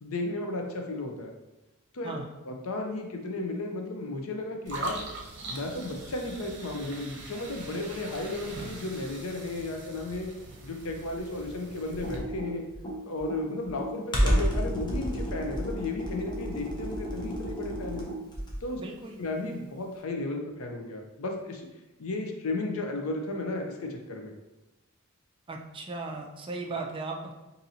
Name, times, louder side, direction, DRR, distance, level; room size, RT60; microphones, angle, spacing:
voice 1, 0.0-1.3 1.9-2.1 2.5-5.1 5.5-10.3 10.6-12.6 13.0-18.1 18.6-18.8 19.2-21.6 22.0-24.3, left 2 dB, 70° left, 3 dB, 0.6 m, -34 dB
sound 1, 4.7-12.2, right 2 dB, 55° right, 0.7 m, -41 dB
Computer keyboard, 11.9-18.7, equal, 20° left, 0.6 m, -30 dB
voice 2, 18.8-19.2 25.5-27.3, right 3 dB, 25° right, 1 dB, 0.3 m, -37 dB
4.1 x 2.7 x 2.7 m, 1.0 s
head